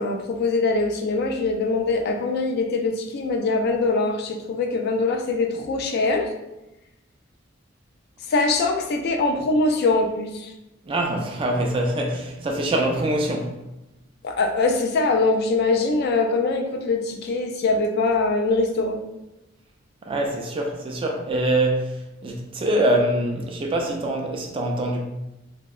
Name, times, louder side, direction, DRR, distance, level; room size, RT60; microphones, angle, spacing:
voice 1, 0.0-6.3 8.3-10.5 14.2-19.0, left 3 dB, 55° left, 0.3 m, -23 dB
voice 2, 10.9-13.5 20.1-25.0, right 1 dB, 30° right, 0.3 m, -24 dB
2.7 x 2.1 x 2.2 m
head